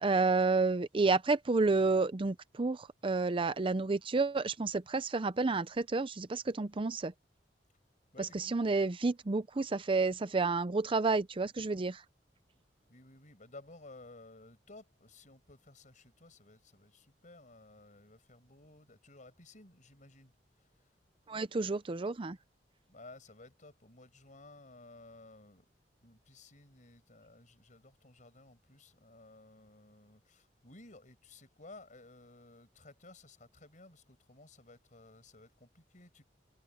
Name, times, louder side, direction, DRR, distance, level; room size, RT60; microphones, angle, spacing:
voice 1, 0.0-7.1 8.5-12.0 21.3-22.4, right 3 dB, 30° right, 0.5 m, -30 dB
voice 2, 8.1-8.6 12.9-20.9 22.9-25.6 26.0-36.2, left 2 dB, 45° left, 6.8 m, -56 dB
head